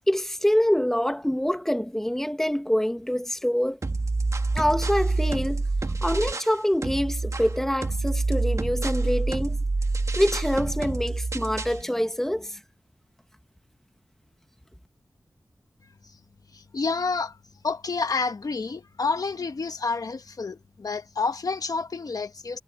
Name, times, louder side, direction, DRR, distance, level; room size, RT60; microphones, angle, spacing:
voice 1, 0.1-3.8 4.5-5.7 6.0-9.6 10.1-12.6, equal, 5° left, 1.6 m, -25 dB
sound 1, 3.8-6.6 6.8-11.8, right 3 dB, 50° right, 1.5 m, -27 dB
voice 2, 16.5-17.4 17.6-22.6, left 4 dB, 70° left, 1.2 m, -29 dB
wide cardioid pair, 85°, 6 cm